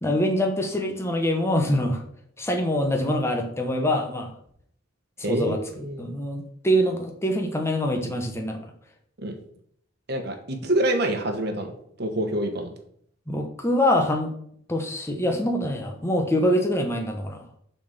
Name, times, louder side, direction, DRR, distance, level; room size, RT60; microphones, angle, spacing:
voice 1, 0.0-2.0 2.4-4.3 5.2-5.6 6.0-8.7 13.3-14.3 14.7-17.4, equal, 15° left, 3 dB, 0.9 m, -24 dB
voice 2, 5.2-6.1 9.2-9.3 10.1-11.7 12.0-12.7, right 1 dB, 55° right, 4 dB, 1.4 m, -26 dB
7.0 x 4.3 x 6.6 m, 0.66 s
head